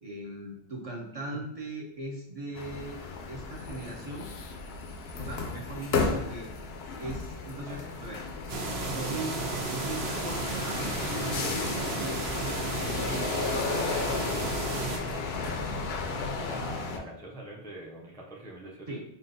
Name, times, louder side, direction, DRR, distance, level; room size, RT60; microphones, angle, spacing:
voice 1, 0.0-3.0 3.3-4.3 5.2-6.5 7.0-8.2 8.8-11.5 11.9-13.8 18.9-19.0, right 2 dB, 40° right, -2 dB, 0.6 m, -39 dB
sound 1, 2.5-17.0, left 4 dB, 80° left, 0.8 m, -34 dB
sound 2, 8.5-15.0, right 3 dB, 85° right, 1.0 m, -33 dB
voice 2, 16.1-18.9, right 1 dB, 5° left, -3 dB, 0.4 m, -44 dB
5.6 x 2.4 x 2.6 m, 0.79 s
omnidirectional pair, 1.0 m